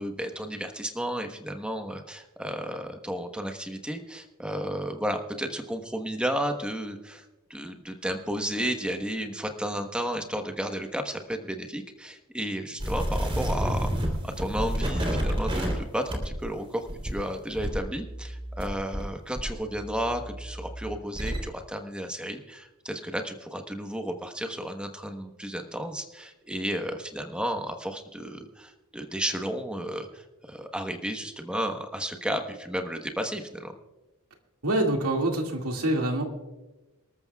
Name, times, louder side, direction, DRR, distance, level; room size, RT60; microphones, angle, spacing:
voice 1, 0.0-7.2 7.5-33.7, equal, 5° right, 5 dB, 1.1 m, -33 dB
sound 1, 12.8-19.1 19.4-21.4, equal, 25° right, 3.5 m, -30 dB
voice 2, 34.6-36.2, right 1 dB, 75° right, 2 dB, 2.2 m, -25 dB
27.5 x 13.5 x 2.4 m, 1.1 s
head